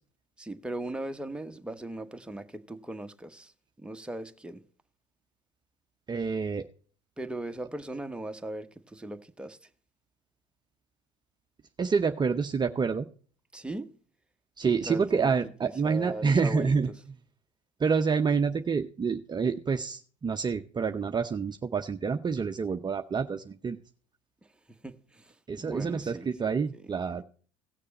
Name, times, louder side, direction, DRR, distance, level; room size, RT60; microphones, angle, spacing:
voice 1, 0.4-3.5 3.8-4.6 7.2-9.6 13.5-13.9 14.6-15.3 15.6-16.7 24.8-26.3 26.7-26.8, right 1 dB, 5° right, 1.2 m, -38 dB
voice 2, 6.1-6.7 11.8-13.1 14.6-16.9 17.8-23.8 25.5-27.2, right 5 dB, 25° right, 0.8 m, -28 dB
17.5 x 6.7 x 4.2 m
hypercardioid pair, 75°, 17 cm